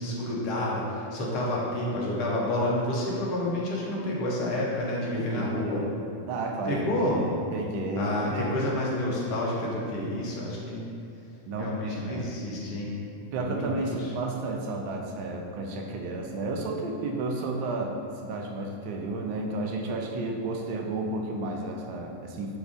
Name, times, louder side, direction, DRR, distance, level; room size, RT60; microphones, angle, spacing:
voice 1, 0.0-5.8 6.6-7.2 8.0-10.8 11.6-12.9 13.4-13.6 13.9-14.1, left 1 dB, 45° left, -4 dB, 0.6 m, -29 dB
voice 2, 5.1-5.8 6.3-6.8 7.2-8.6 11.5-12.2 13.2-22.6, right 2 dB, 45° right, 2 dB, 0.3 m, -32 dB
2.4 x 2.3 x 3.5 m, 2.6 s
figure-of-eight pair, 90°, 0 cm